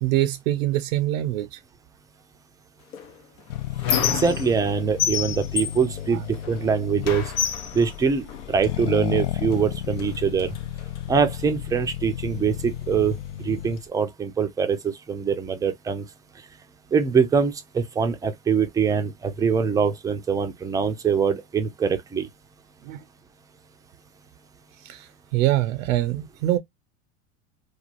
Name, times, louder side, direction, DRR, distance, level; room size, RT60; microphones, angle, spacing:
voice 1, 0.0-1.6 4.1-4.2 6.1-6.2 22.8-23.0 24.8-26.6, right 14 dB, 75° right, 0.5 m, -24 dB
Squeak, 2.9-4.7 5.0-6.7 7.0-8.7 9.5-9.6 10.0-11.0, left 8 dB, 85° left, 0.8 m, -29 dB
Accelerating revving vroom, 3.5-13.9, left 12 dB, 65° left, 0.5 m, -33 dB
voice 2, 4.1-7.3 7.7-10.5 11.1-16.0 16.9-22.3, right 6 dB, 10° right, 0.3 m, -23 dB
3.1 x 2.2 x 2.5 m
hypercardioid pair, 105°, 41 cm